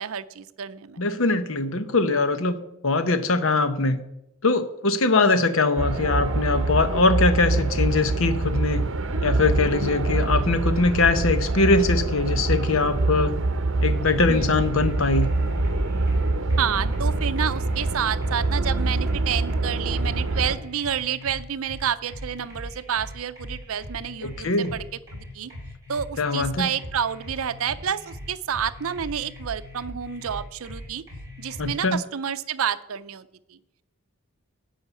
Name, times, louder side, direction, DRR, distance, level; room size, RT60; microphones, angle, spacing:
voice 1, 0.0-1.0 14.3-14.7 16.6-24.8 25.1-25.5 25.9-31.0 31.4-33.6, right 8 dB, 70° right, 13 dB, 0.5 m, -29 dB
voice 2, 1.0-4.0 4.4-8.8 9.2-13.4 13.8-15.3 24.2-24.8 26.2-26.7 31.6-32.0, left 3 dB, 65° left, 11 dB, 0.9 m, -22 dB
sound 1, 5.8-20.5, right 2 dB, 55° right, 0.9 m, -25 dB
sound 2, 14.8-31.7, left 1 dB, 15° right, 5.2 m, -40 dB
11.0 x 5.6 x 8.2 m, 0.84 s
head